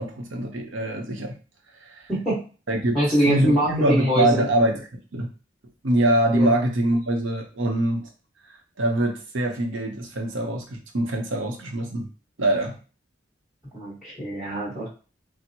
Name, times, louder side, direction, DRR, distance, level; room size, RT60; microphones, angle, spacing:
voice 1, 0.0-1.4 1.8-2.1 2.7-3.0 3.3-5.3 5.8-8.1 8.5-12.1 12.4-12.8, right 1 dB, 80° right, 3 dB, 0.7 m, -24 dB
voice 2, 2.1-2.4 2.9-4.4 6.3-6.5 13.7-14.9, equal, 5° right, -10 dB, 1.3 m, -23 dB
4.3 x 2.1 x 2.8 m, 0.36 s
head